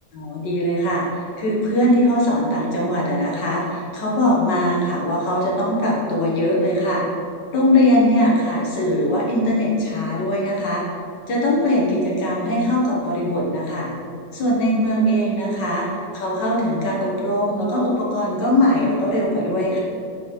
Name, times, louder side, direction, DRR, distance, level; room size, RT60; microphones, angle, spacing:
voice 1, 0.1-7.0 7.5-10.8 11.3-13.9 14.3-15.9 16.1-19.8, left 1 dB, 75° left, -4 dB, 1.9 m, -20 dB
5.6 x 4.0 x 5.1 m, 2.4 s
omnidirectional pair, 1.9 m